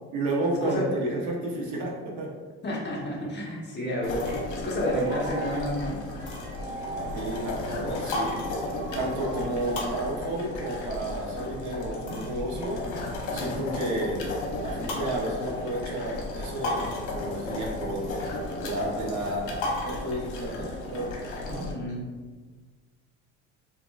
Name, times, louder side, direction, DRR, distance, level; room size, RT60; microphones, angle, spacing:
voice 1, 0.1-2.3 7.1-8.4 8.9-12.8 13.3-14.2 14.6-18.1 18.6-21.2 21.5-21.7, right 1 dB, 60° right, -2 dB, 1.0 m, -31 dB
voice 2, 2.6-4.3 4.6-6.0 13.3-13.8 21.5-22.0, equal, 35° left, -4 dB, 1.1 m, -30 dB
sound 1, 3.2-10.8, right 4 dB, 35° right, 0.9 m, -43 dB
sound 2, 4.0-21.7, left 2 dB, 70° left, 1.0 m, -34 dB
4.1 x 2.9 x 2.4 m, 1.4 s
cardioid pair, 100°, 32 cm